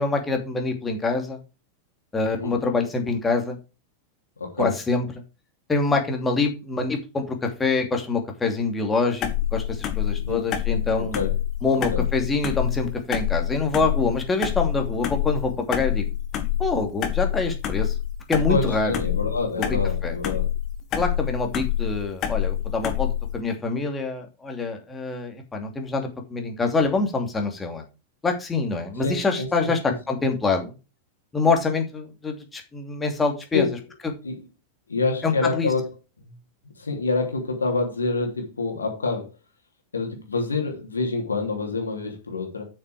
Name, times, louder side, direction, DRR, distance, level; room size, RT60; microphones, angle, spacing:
voice 1, 0.0-1.4 2.1-3.6 4.6-5.1 5.7-11.2 11.6-16.0 16.6-17.9 18.3-19.0 19.6-19.7 20.0-20.1 20.9-27.8 28.2-30.8 31.3-33.7 35.2-35.7, left 3 dB, 15° left, 3 dB, 2.7 m, -25 dB
voice 2, 4.4-4.7 10.1-10.4 11.0-11.3 11.9-12.0 18.5-20.5 29.0-29.5 33.5-33.7 34.2-34.4 34.9-35.9 36.3-36.4 36.7-39.3 39.9-42.7, left 3 dB, 75° left, 2 dB, 3.1 m, -27 dB
sound 1, 9.2-23.4, left 11 dB, 35° left, 1.8 m, -27 dB
8.3 x 6.8 x 4.9 m, 0.29 s
figure-of-eight pair, 90°, 0 cm